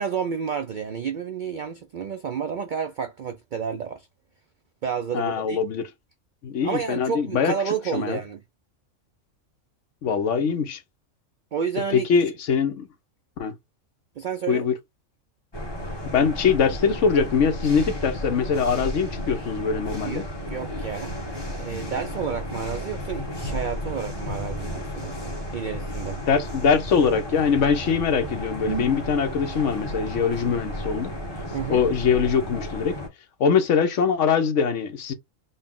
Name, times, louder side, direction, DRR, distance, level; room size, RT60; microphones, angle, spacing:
voice 1, 0.0-4.1 4.8-5.6 6.6-8.4 11.5-12.1 14.2-14.7 20.0-21.2 21.5-26.2 31.5-31.9, right 7 dB, 70° right, 0.4 m, -30 dB
voice 2, 5.1-5.9 6.4-8.2 10.0-10.8 11.9-12.9 13.4-13.5 14.5-14.7 16.1-20.2 26.3-31.1 31.7-33.0 33.4-35.1, left 6 dB, 70° left, 1.1 m, -22 dB
sound 1, 15.5-33.1, equal, 20° left, 1.1 m, -33 dB
4.0 x 2.1 x 3.6 m
omnidirectional pair, 1.3 m